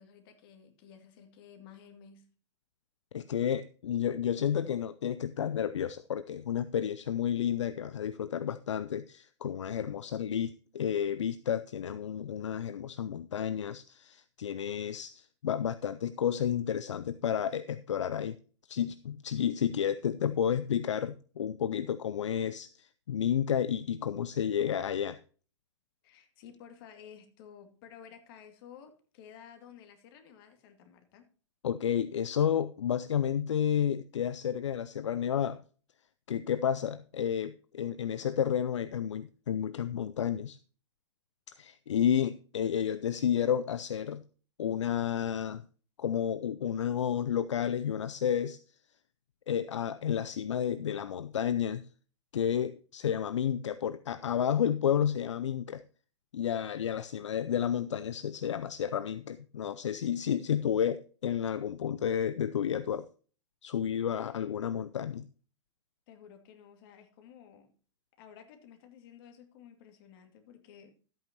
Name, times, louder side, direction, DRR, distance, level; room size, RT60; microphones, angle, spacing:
voice 1, 0.0-2.3 26.0-31.3 66.1-67.7 68.2-70.9, left 8 dB, 50° left, 2.4 m, -53 dB
voice 2, 3.1-18.4 18.7-25.2 31.6-35.6 36.3-40.6 41.6-44.2 44.6-45.6 46.0-48.6 49.5-51.8 52.3-55.8 56.3-63.1 63.6-65.3, left 9 dB, 75° left, 0.5 m, -31 dB
13.0 x 8.8 x 2.9 m
hypercardioid pair, 105°, 15 cm